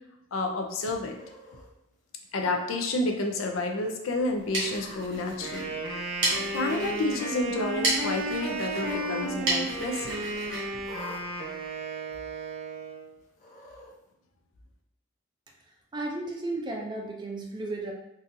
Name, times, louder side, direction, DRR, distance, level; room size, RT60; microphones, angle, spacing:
voice 1, 0.3-1.2 2.3-5.8 6.5-10.2, left 2 dB, 80° left, 3 dB, 0.5 m, -30 dB
Cat, 1.1-1.7 2.4-2.8 3.2-3.3 4.4-5.1 6.1-6.8 7.0-7.6 8.7-9.3 9.6-9.7 10.8-11.2 12.1-12.2 13.3-13.9, left 2 dB, 35° left, 0.7 m, -47 dB
sound 1, 4.2-11.7, right 2 dB, 60° right, 1.2 m, -34 dB
Wind instrument woodwind instrument, 5.3-13.1, right 2 dB, 80° right, 0.7 m, -34 dB
voice 2, 15.6-17.9, right 2 dB, 20° right, 1 dB, 0.4 m, -34 dB
4.0 x 2.4 x 2.6 m, 0.86 s
head